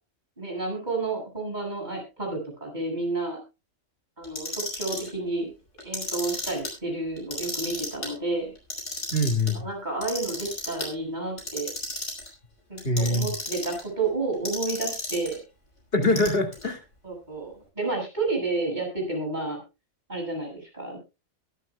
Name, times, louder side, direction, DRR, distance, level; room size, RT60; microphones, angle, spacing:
voice 1, 0.4-3.4 4.2-5.5 5.8-8.5 9.5-11.7 12.7-15.4 17.0-19.6 20.1-21.0, right 3 dB, 35° right, 2 dB, 7.3 m, -30 dB
Clock, 4.2-5.1 5.8-6.7 7.2-8.1 8.6-9.5 10.0-10.9 11.4-12.3 12.8-13.8 14.5-15.4 16.0-16.6, left 2 dB, 80° left, 5.6 m, -33 dB
voice 2, 9.1-9.6 12.8-13.3 15.9-16.8, left 1 dB, 55° left, 7 dB, 2.7 m, -23 dB
22.0 x 11.0 x 2.3 m, 0.28 s
omnidirectional pair, 1.2 m